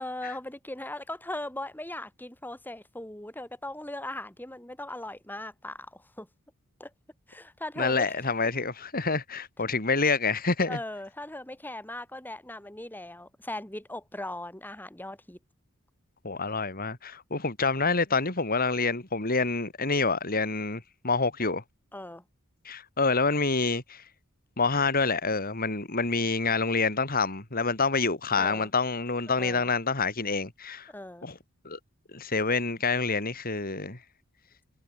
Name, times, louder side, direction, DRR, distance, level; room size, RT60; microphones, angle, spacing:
voice 1, 0.0-6.3 6.8-6.9 7.3-8.1 10.7-15.4 21.9-22.2 28.3-28.7 29.4-29.7 30.9-31.3, left 1 dB, 10° left, 3.6 m, -39 dB
voice 2, 7.8-10.8 16.2-21.6 22.7-24.0 24.6-30.9 31.2-31.4 31.7-31.8 32.1-34.0, left 4 dB, 45° left, 3.5 m, -27 dB
head